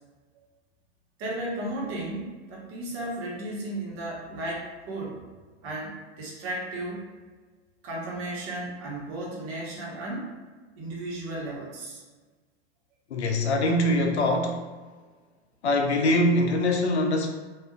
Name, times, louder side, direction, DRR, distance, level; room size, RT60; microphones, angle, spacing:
voice 1, 1.2-5.2 5.6-7.0 7.8-10.3 10.7-12.0, right 1 dB, 40° right, -3 dB, 1.1 m, -34 dB
voice 2, 13.1-14.7 15.6-17.3, left 1 dB, 85° left, 3 dB, 0.6 m, -23 dB
3.5 x 2.5 x 2.3 m, 1.4 s
hypercardioid pair, 95°, 33 cm